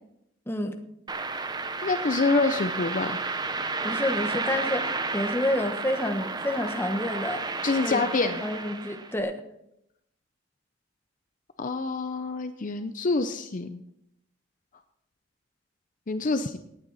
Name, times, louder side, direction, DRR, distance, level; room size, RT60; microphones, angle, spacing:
voice 1, 0.5-0.8 3.8-7.4 7.8-9.4, left 1 dB, 10° left, 5 dB, 1.1 m, -29 dB
sound 1, 1.1-9.2, right 3 dB, 20° right, 0.8 m, -32 dB
voice 2, 1.8-3.2 7.6-8.4 11.6-13.8 16.1-16.6, left 3 dB, 45° left, 9 dB, 0.6 m, -26 dB
18.0 x 9.1 x 4.1 m, 0.80 s
head